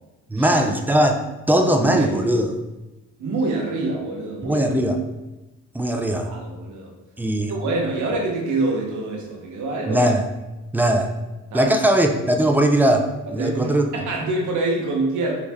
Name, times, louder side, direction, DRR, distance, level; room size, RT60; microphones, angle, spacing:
voice 1, 0.3-1.2 1.5-2.5 4.4-5.0 5.7-6.3 7.2-7.5 9.9-10.2 10.7-11.1 11.5-13.9, right 1 dB, 5° right, 4 dB, 0.3 m, -19 dB
voice 2, 1.5-2.2 3.2-4.6 6.2-6.9 7.5-10.0 11.5-11.7 13.3-15.3, right 2 dB, 75° right, 0 dB, 0.9 m, -26 dB
3.8 x 2.5 x 3.3 m, 1.0 s
cardioid pair, 90°, 30 cm